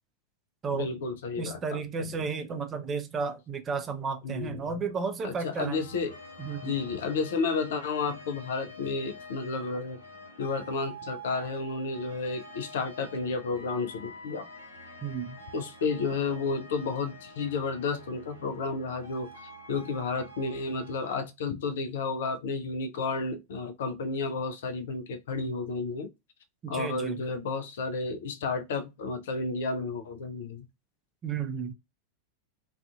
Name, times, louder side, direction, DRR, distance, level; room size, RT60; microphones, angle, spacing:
voice 1, 0.7-2.1 4.2-4.8 5.2-6.1 6.6-10.0 10.4-14.5 15.5-19.3 19.7-26.1 26.7-30.7, left 4 dB, 60° left, 0.4 m, -32 dB
voice 2, 1.4-5.8 6.4-6.7 15.0-15.4 26.6-27.2 31.2-31.7, right 5 dB, 25° right, 0.4 m, -33 dB
sound 1, 5.6-21.2, equal, 80° left, 0.9 m, -47 dB
2.4 x 2.4 x 2.2 m
figure-of-eight pair, 90°, 0 cm